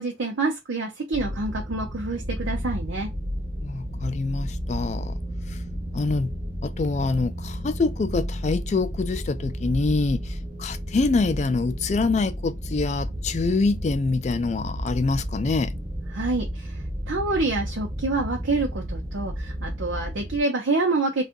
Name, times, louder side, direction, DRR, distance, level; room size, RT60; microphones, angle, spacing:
voice 1, 0.0-3.1 16.1-21.2, right 3 dB, 90° right, 0.7 m, -27 dB
sound 1, 1.1-20.4, equal, 20° right, 0.5 m, -32 dB
voice 2, 3.6-5.2 5.5-5.6 5.9-6.3 6.6-15.7, left 3 dB, 35° left, 0.3 m, -25 dB
2.6 x 2.4 x 3.7 m
head